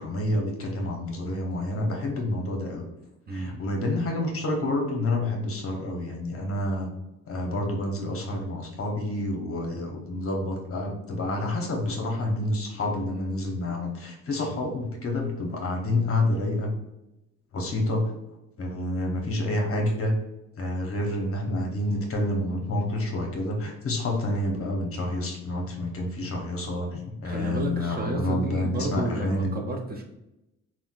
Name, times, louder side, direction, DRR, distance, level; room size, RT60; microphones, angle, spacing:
voice 1, 0.0-2.9 3.3-6.9 7.3-16.7 17.5-18.1 18.6-20.1 20.6-29.5, left 1 dB, 50° left, 1 dB, 0.8 m, -28 dB
voice 2, 3.3-3.6 27.2-30.0, right 2 dB, 30° right, 2 dB, 0.5 m, -31 dB
3.7 x 2.1 x 2.4 m, 0.91 s
cardioid pair, 90°, 30 cm